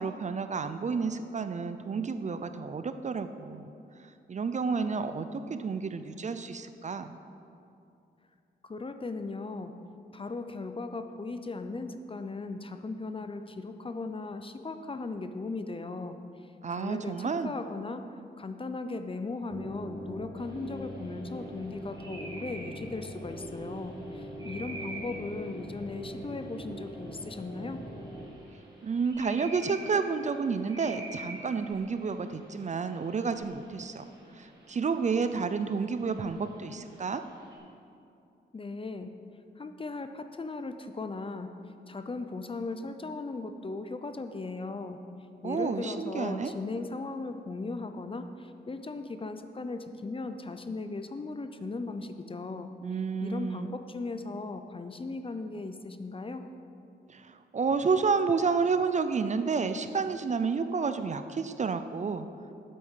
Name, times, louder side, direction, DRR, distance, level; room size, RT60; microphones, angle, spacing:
voice 1, 0.0-3.7 4.3-7.2 16.6-17.5 28.8-34.0 34.4-37.2 45.4-46.5 52.8-53.8 57.1-62.3, right 5 dB, 40° right, 10 dB, 0.4 m, -30 dB
voice 2, 8.6-9.7 10.1-16.2 16.7-18.1 18.4-27.8 38.5-39.1 39.6-41.5 41.9-45.0 45.4-52.7 53.2-56.5, left 3 dB, 30° left, 8 dB, 0.5 m, -37 dB
sound 1, 19.5-28.3, equal, 15° left, 1.6 m, -42 dB
sound 2, 20.4-37.6, right 2 dB, 20° right, 2.3 m, -49 dB
8.4 x 7.8 x 5.6 m, 2.6 s
wide cardioid pair, 95°, 19 cm